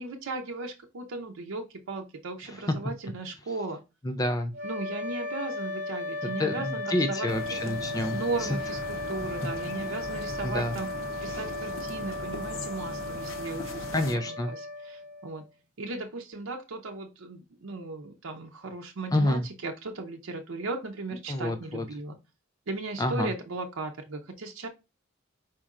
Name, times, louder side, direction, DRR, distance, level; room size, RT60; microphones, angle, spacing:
voice 1, 0.0-3.8 4.6-7.3 7.6-7.7 8.1-10.9 11.2-14.0 14.3-15.4 15.8-22.2 22.7-24.7, right 3 dB, 90° right, 0.6 m, -36 dB
voice 2, 4.0-4.5 6.2-8.6 10.4-10.8 13.9-14.5 19.1-19.4 21.3-21.8 23.0-23.3, left 1 dB, 20° left, 0.4 m, -28 dB
sound 1, 4.5-15.5, left 2 dB, 55° right, 1.5 m, -36 dB
sound 2, 7.3-14.2, left 2 dB, 75° left, 0.7 m, -40 dB
4.4 x 4.2 x 2.4 m
head